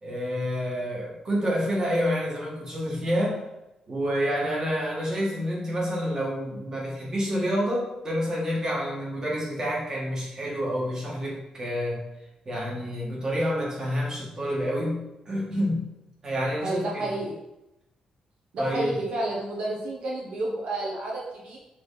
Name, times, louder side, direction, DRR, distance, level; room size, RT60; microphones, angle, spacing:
voice 1, 0.0-3.4 3.9-12.0 12.5-15.9 16.2-17.1 18.6-19.0, equal, 30° right, -3 dB, 1.9 m, -28 dB
voice 2, 16.6-17.3 18.5-21.6, right 1 dB, 70° right, -3 dB, 1.2 m, -30 dB
6.7 x 3.5 x 4.1 m, 0.91 s
wide cardioid pair, 140°, 2 cm